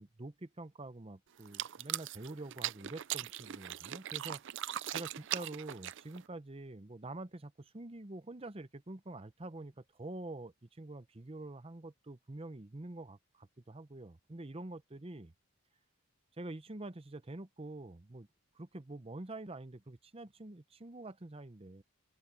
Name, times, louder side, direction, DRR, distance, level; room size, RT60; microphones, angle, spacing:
voice 1, 0.0-4.4 4.9-15.3 16.4-18.3 18.5-21.8, right 2 dB, 25° right, 0.7 m, -46 dB
sound 1, 1.4-6.3, right 12 dB, 55° right, 0.4 m, -40 dB
open air
head